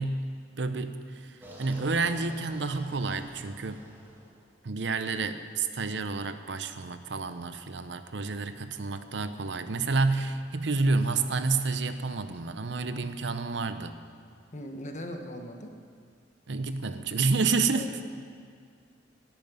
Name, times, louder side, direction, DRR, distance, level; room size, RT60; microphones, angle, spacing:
voice 1, 0.0-3.9 4.6-14.0 16.5-17.9, right 3 dB, 70° right, 10 dB, 0.7 m, -29 dB
sound 1, 1.4-4.5, equal, 10° right, 2.4 m, -49 dB
voice 2, 14.5-15.7 17.7-17.9, equal, 40° left, 4 dB, 1.3 m, -39 dB
11.0 x 9.0 x 9.5 m, 2.2 s
head